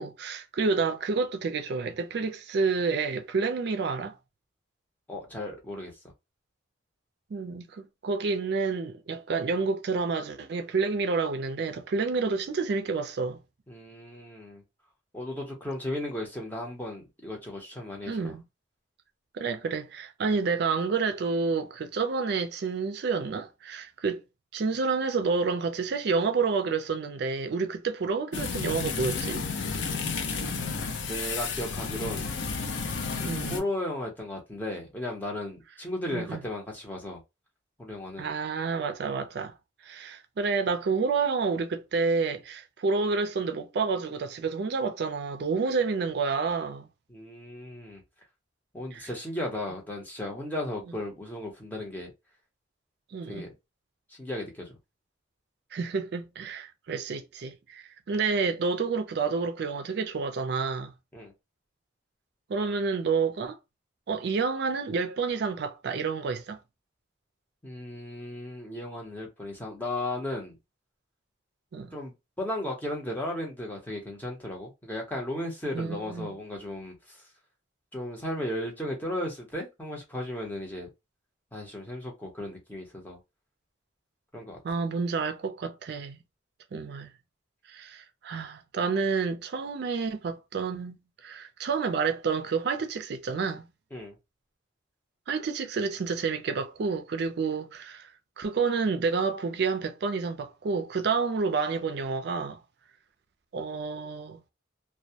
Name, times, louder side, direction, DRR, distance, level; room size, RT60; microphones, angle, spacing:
voice 1, 0.0-4.2 7.3-13.4 18.1-18.4 19.3-24.2 24.5-29.4 33.2-33.6 36.1-36.4 38.2-39.5 39.8-46.9 48.9-49.1 53.1-53.5 55.7-60.9 62.5-63.6 64.1-66.6 71.7-71.9 75.7-76.3 84.6-86.2 86.7-87.1 87.7-91.0 91.2-93.7 95.3-98.1 98.4-102.6 103.5-104.4, right 4 dB, 60° right, 0.4 m, -29 dB
voice 2, 5.1-5.9 13.7-14.6 15.1-18.3 31.1-32.3 33.5-37.2 37.8-38.3 47.1-48.0 48.7-52.1 53.3-53.5 54.1-54.8 61.1-61.3 67.6-70.5 71.9-77.2 77.9-80.9 81.5-83.2 84.3-84.6 93.9-94.1, left 1 dB, 10° left, 0.7 m, -35 dB
sound 1, 28.3-33.6, left 5 dB, 75° left, 0.5 m, -32 dB
2.2 x 2.1 x 2.7 m
head